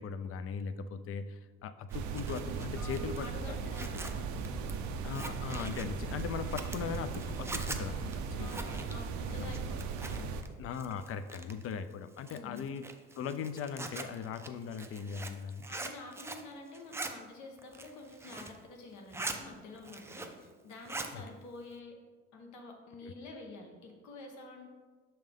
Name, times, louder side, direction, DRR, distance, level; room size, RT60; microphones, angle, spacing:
voice 1, 0.0-3.6 4.2-4.3 5.0-8.1 8.4-8.8 9.4-9.5 10.6-12.9 13.1-15.7 21.1-21.2 23.0-23.1, left 6 dB, 50° left, 12 dB, 0.5 m, -39 dB
Zipper (clothing), 1.9-10.5 10.7-11.7 12.2-16.5 16.7-17.1 17.6-18.6 18.9-19.4 19.7-20.5 20.7-21.1, right 3 dB, 10° right, 0.4 m, -43 dB
sound 1, 1.9-10.4, right 5 dB, 80° right, 0.6 m, -38 dB
voice 2, 2.8-4.7 8.4-10.3 12.3-12.7 15.7-21.9 22.3-24.7, left 2 dB, 80° left, 2 dB, 1.3 m, -48 dB
6.4 x 5.6 x 3.6 m, 1.4 s
cardioid pair, 135°, 29 cm